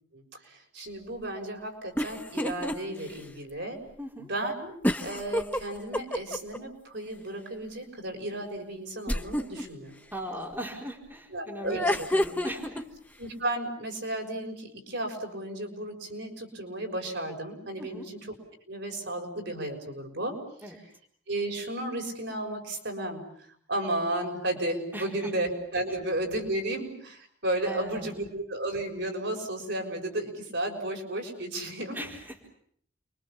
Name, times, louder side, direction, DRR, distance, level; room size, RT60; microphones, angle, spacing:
voice 1, 0.1-3.8 4.3-10.0 11.3-12.1 13.2-18.3 18.7-20.4 21.3-23.2 23.7-32.0, right 1 dB, 65° right, 2 dB, 6.4 m, -33 dB
sound 1, 2.0-2.8 3.2-3.3 4.8-6.6 9.1-9.6 11.6-12.8, left 1 dB, 10° left, 1.1 m, -28 dB
voice 2, 4.0-4.3 10.1-12.8 17.8-18.1 20.6-20.8 24.9-25.3 27.6-28.1 31.9-32.5, equal, 10° right, -1 dB, 4.5 m, -39 dB
29.5 x 24.0 x 7.4 m, 0.65 s
head